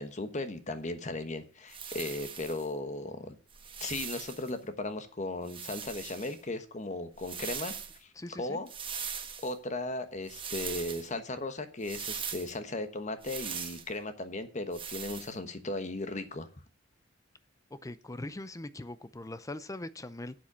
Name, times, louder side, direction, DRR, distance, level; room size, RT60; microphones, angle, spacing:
voice 1, 0.0-3.4 3.8-7.7 8.0-8.1 8.4-8.7 9.4-16.5, left 2 dB, 40° left, 1.1 m, -36 dB
sound 1, 1.7-2.7 3.5-4.5 5.4-6.4 7.2-8.0 8.7-9.5 10.3-11.1 11.8-12.5 13.2-13.9 14.7-15.3, right 7 dB, 30° right, 1.3 m, -40 dB
voice 2, 8.2-8.6 17.7-20.3, left 2 dB, 15° left, 0.5 m, -41 dB
7.5 x 7.3 x 8.4 m
head